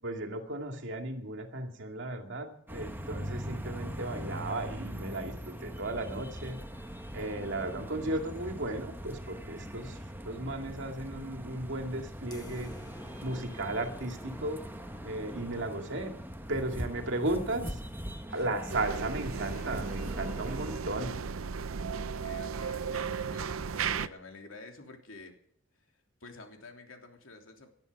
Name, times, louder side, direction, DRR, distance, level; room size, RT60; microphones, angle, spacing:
voice 1, 0.0-6.6 7.1-10.0 10.2-12.7 13.2-14.6 15.0-16.1 16.5-17.8 18.3-21.1, right 2 dB, 65° right, 5 dB, 2.4 m, -35 dB
sound 1, 2.7-20.8, equal, 10° right, 1.4 m, -41 dB
voice 2, 9.6-10.0 17.0-17.6 18.3-18.5 20.4-20.9 21.9-25.4 26.2-27.7, left 3 dB, 70° left, 3 dB, 3.3 m, -50 dB
sound 2, 12.3-17.2, left 1 dB, 20° left, 1.4 m, -53 dB
sound 3, 18.7-24.1, right 6 dB, 80° right, 0.6 m, -35 dB
19.0 x 12.5 x 5.4 m, 0.66 s
head